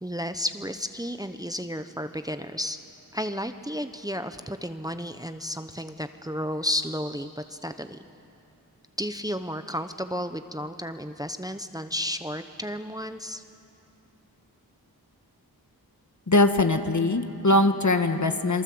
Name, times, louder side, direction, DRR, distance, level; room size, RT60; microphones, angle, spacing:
voice 1, 0.0-2.8 3.1-8.0 9.0-13.4, equal, 10° right, 9 dB, 0.9 m, -32 dB
voice 2, 16.3-18.6, left 2 dB, 50° left, 8 dB, 1.4 m, -21 dB
28.0 x 23.0 x 7.8 m, 2.8 s
wide cardioid pair, 55°, 38 cm